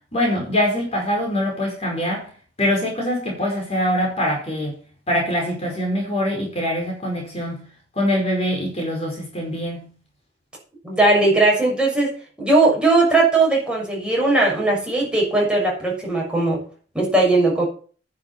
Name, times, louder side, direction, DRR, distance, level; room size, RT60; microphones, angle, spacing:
voice 1, 0.1-2.3 2.6-4.8 5.1-7.6 7.9-9.9, equal, 35° left, 0 dB, 5.0 m, -23 dB
voice 2, 10.8-12.1 12.4-16.6 16.9-17.6, right 2 dB, 5° right, -3 dB, 6.5 m, -18 dB
10.5 x 8.5 x 7.2 m, 0.42 s
head